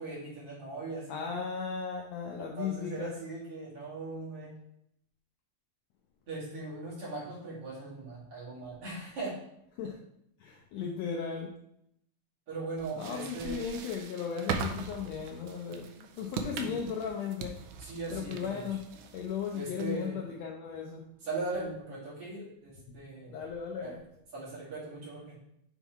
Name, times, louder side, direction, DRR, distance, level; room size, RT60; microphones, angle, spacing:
voice 1, 0.0-1.4 2.4-4.5 6.3-9.4 10.8-10.9 12.5-13.6 16.6-16.8 17.8-18.6 19.5-20.2 21.2-23.4 23.8-23.9 24.3-25.4, right 3 dB, 50° right, -7 dB, 3.1 m, -39 dB
voice 2, 1.1-3.1 9.8-10.0 10.4-11.5 13.0-17.6 18.1-18.8 19.1-21.0 22.9-23.0 23.3-24.0, left 6 dB, 80° left, 0 dB, 1.5 m, -36 dB
sound 1, 12.8-20.1, right 6 dB, 80° right, 1.8 m, -41 dB
7.1 x 3.7 x 4.5 m, 0.76 s
omnidirectional pair, 3.7 m